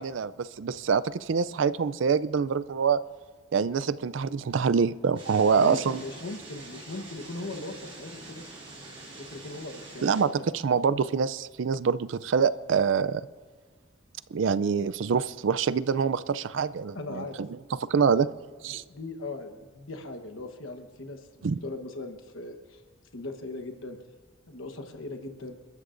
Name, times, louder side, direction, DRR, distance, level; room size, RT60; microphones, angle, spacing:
voice 1, 0.0-3.0 3.5-6.0 10.0-13.2 14.3-17.5 17.9-18.3 18.6-18.8 21.4-21.6, right 6 dB, 75° right, 16 dB, 0.4 m, -25 dB
sound 1, 5.2-10.2, right 2 dB, 25° right, 3.8 m, -45 dB
voice 2, 5.5-8.4 9.1-11.0 16.9-17.4 17.9-18.3 18.7-22.8 23.1-24.0 24.5-25.6, left 2 dB, 90° left, 6 dB, 1.2 m, -39 dB
29.5 x 13.0 x 2.6 m, 1.5 s
head